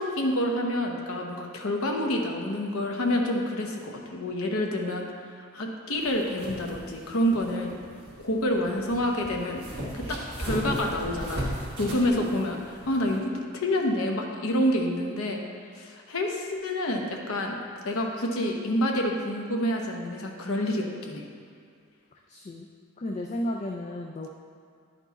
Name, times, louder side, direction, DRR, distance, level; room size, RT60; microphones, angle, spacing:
voice 1, 0.0-5.0 5.4-7.8 8.2-9.6 9.9-11.5 11.8-15.4 15.7-17.6 17.8-21.2, left 1 dB, 80° left, 1 dB, 0.9 m, -28 dB
sound 1, 6.0-13.2, equal, 50° right, 1.7 m, -37 dB
voice 2, 22.3-22.7 23.0-24.3, left 1 dB, 30° left, 1 dB, 0.3 m, -33 dB
9.7 x 4.5 x 4.0 m, 2.2 s
head